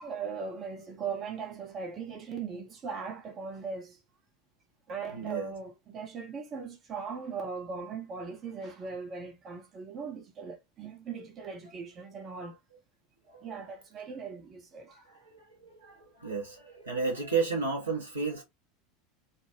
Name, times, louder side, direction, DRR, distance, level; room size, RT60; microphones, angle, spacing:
voice 1, 0.0-4.0 4.9-12.6 13.4-15.1, right 5 dB, 30° right, 0.7 m, -39 dB
voice 2, 5.1-5.5 13.3-13.5 14.9-18.4, right 4 dB, 85° right, 1.2 m, -33 dB
3.3 x 2.0 x 3.0 m
figure-of-eight pair, 80°, 0 cm